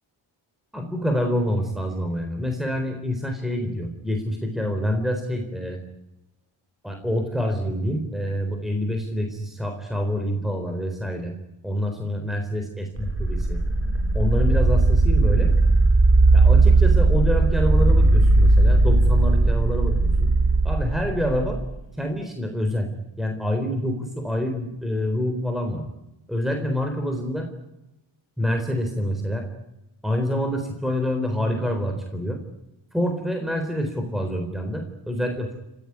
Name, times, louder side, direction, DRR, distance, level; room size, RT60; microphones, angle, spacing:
voice 1, 0.7-5.8 6.8-11.3 11.6-13.6 14.1-15.5 16.3-20.3 20.6-21.6 22.0-22.9 23.2-25.9 26.3-27.5 28.4-29.5 30.0-32.4 32.9-35.6, equal, ahead, 4 dB, 4.0 m, -27 dB
sound 1, 13.0-21.7, right 2 dB, 30° right, 3.2 m, -18 dB
29.5 x 16.0 x 9.7 m, 0.96 s
wide cardioid pair, 135°, 48 cm